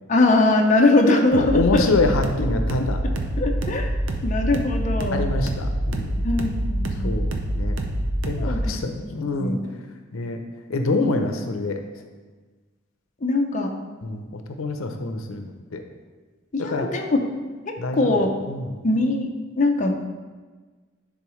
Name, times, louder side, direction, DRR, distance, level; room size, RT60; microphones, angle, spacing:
voice 1, 0.1-1.8 3.0-3.9 4.2-5.2 6.2-7.1 8.4-8.8 9.4-9.6 13.2-13.7 16.5-17.1 17.7-18.3 18.8-19.3 19.6-20.1, left 2 dB, 40° left, 1 dB, 0.6 m, -21 dB
sound 1, 1.3-8.7, right 1 dB, 65° right, 0.7 m, -26 dB
voice 2, 1.4-3.0 5.1-6.2 7.0-7.8 8.3-9.6 10.1-10.4 10.7-11.8 14.0-15.8 16.6-16.9 17.8-18.2 18.5-18.8, left 2 dB, 90° left, 5 dB, 0.6 m, -26 dB
10.5 x 3.8 x 3.1 m, 1.4 s
head